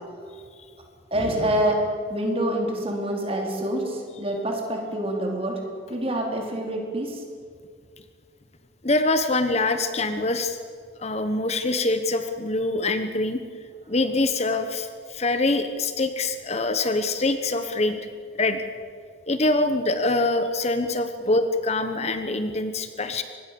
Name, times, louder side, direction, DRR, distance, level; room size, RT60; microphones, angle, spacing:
voice 1, 1.1-1.8 2.1-5.6 5.9-7.2, right 1 dB, 30° right, 1 dB, 4.4 m, -26 dB
voice 2, 8.8-10.6 11.0-13.4 13.9-18.0 18.4-18.6 19.3-23.2, left 2 dB, 35° left, 9 dB, 1.1 m, -24 dB
24.5 x 20.5 x 7.0 m, 2.1 s
head